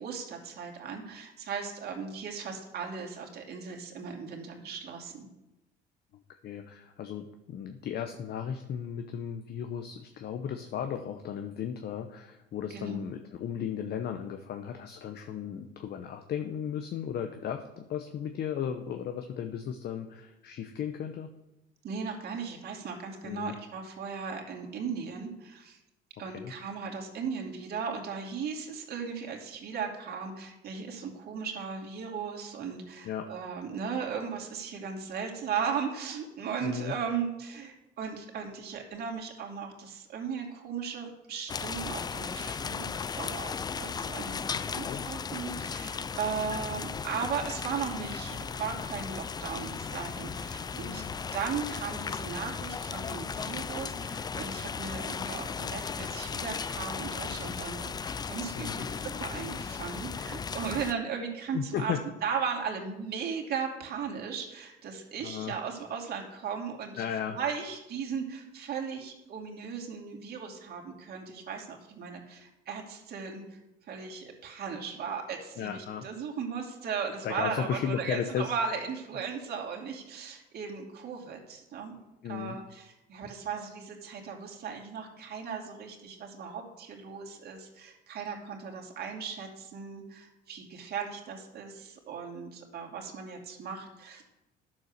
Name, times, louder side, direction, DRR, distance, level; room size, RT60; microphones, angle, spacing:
voice 1, 0.0-5.3 12.7-13.0 21.8-25.8 26.2-51.0 51.3-61.9 62.2-81.9 82.3-94.3, right 6 dB, 55° right, 1 dB, 2.8 m, -37 dB
voice 2, 6.4-21.3 23.2-23.6 26.2-26.5 33.0-33.3 36.6-37.0 44.8-45.0 50.8-51.1 58.5-58.9 61.5-62.0 65.2-65.6 67.0-67.4 75.6-76.1 77.2-78.5 82.2-82.6, left 8 dB, 55° left, 7 dB, 0.9 m, -35 dB
sound 1, 41.5-60.9, left 6 dB, 20° left, 0.3 m, -36 dB
10.5 x 7.4 x 6.6 m, 0.95 s
cardioid pair, 110°, 20 cm